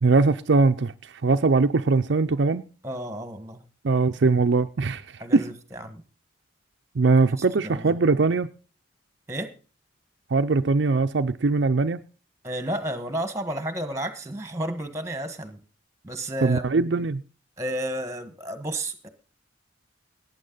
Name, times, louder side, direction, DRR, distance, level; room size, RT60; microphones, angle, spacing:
voice 1, 0.0-0.9 1.2-2.6 3.8-5.0 5.3-5.4 7.0-8.5 10.3-12.0 16.4-17.2, right 3 dB, 60° right, 0.5 m, -21 dB
voice 2, 2.8-3.6 5.2-6.0 7.4-7.9 9.3-9.5 12.4-15.6 16.0-16.6 17.6-19.1, right 1 dB, 15° right, 1.5 m, -32 dB
17.5 x 9.2 x 3.9 m
head